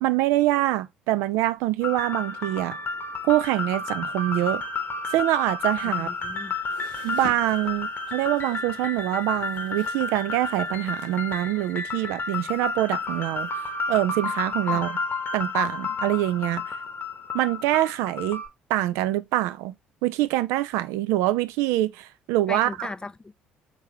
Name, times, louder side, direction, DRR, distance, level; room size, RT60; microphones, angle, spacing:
voice 1, 0.0-2.8 3.2-4.6 5.1-6.1 7.0-13.5 13.9-15.0 15.3-16.7 17.3-18.4 18.7-19.7 20.0-22.9, right 15 dB, 65° right, 0.3 m, -25 dB
sound 1, 1.8-18.5, left 3 dB, 40° left, 0.9 m, -31 dB
sound 2, 5.6-13.5, left 5 dB, 85° left, 1.0 m, -48 dB
voice 2, 5.8-6.5 14.7-14.9 22.5-23.3, left 3 dB, 15° left, 0.3 m, -37 dB
3.6 x 3.2 x 3.3 m
hypercardioid pair, 55°, 5 cm